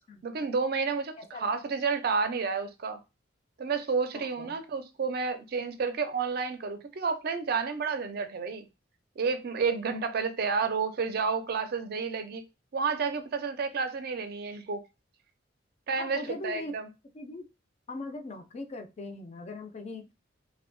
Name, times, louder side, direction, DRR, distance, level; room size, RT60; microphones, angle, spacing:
voice 1, 0.2-3.0 3.6-8.7 9.2-12.4 12.7-14.8 15.9-16.9, right 5 dB, 55° right, 0.4 m, -30 dB
voice 2, 1.2-1.6 4.4-4.6 16.0-16.7 17.1-17.5 17.9-20.1, left 2 dB, 35° left, 0.4 m, -40 dB
2.7 x 2.1 x 2.5 m
head